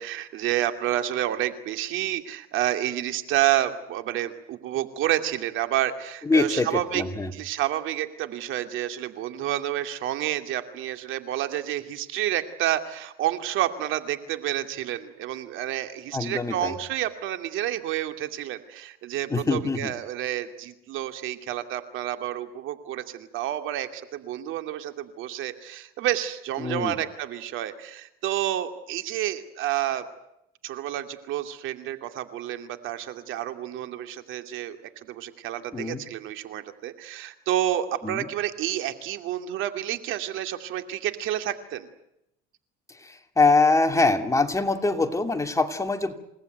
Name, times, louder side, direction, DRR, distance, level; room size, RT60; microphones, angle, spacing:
voice 1, 0.0-7.0 7.3-30.0 30.6-34.8 35.0-41.9, right 12 dB, 70° right, 8 dB, 2.5 m, -29 dB
voice 2, 6.2-7.3 16.1-16.7 19.3-19.9 26.6-26.9 35.7-36.0 38.0-38.3 42.9-46.1, left 3 dB, 15° left, 6 dB, 2.7 m, -24 dB
28.5 x 18.5 x 9.4 m, 0.82 s
cardioid pair, 115°, 21 cm